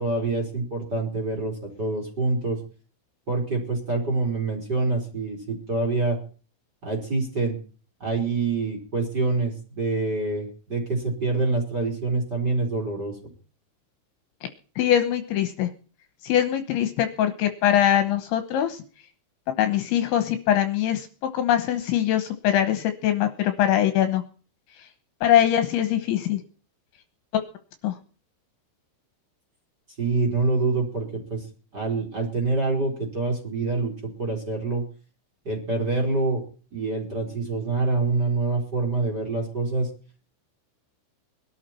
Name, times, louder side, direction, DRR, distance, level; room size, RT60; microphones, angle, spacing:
voice 1, 0.0-2.6 3.3-6.2 6.8-7.6 8.0-13.2 30.0-31.4 31.7-34.8 35.4-36.4 36.7-39.9, right 3 dB, 20° right, 2 dB, 3.8 m, -26 dB
voice 2, 14.8-15.7 16.2-18.8 19.6-21.1 21.3-24.2 25.2-26.4 27.8-27.9, left 11 dB, 75° left, 8 dB, 3.1 m, -22 dB
21.5 x 12.5 x 4.4 m, 0.40 s
omnidirectional pair, 5.9 m